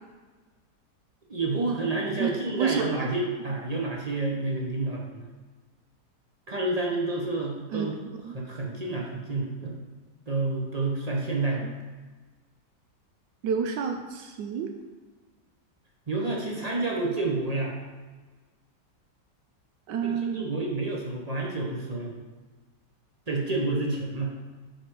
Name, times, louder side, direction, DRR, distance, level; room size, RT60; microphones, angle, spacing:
voice 1, 1.3-5.3 6.5-7.9 8.2-9.7 10.3-11.7 16.1-17.8 20.0-22.2 23.3-24.3, right 2 dB, 35° right, -2 dB, 0.6 m, -29 dB
voice 2, 2.6-3.1 7.7-7.9 8.2-8.4 9.6-9.7 11.6-11.7 13.4-14.7 19.9-20.5, right 7 dB, 80° right, 4 dB, 1.2 m, -29 dB
6.5 x 4.2 x 4.7 m, 1.3 s
omnidirectional pair, 1.9 m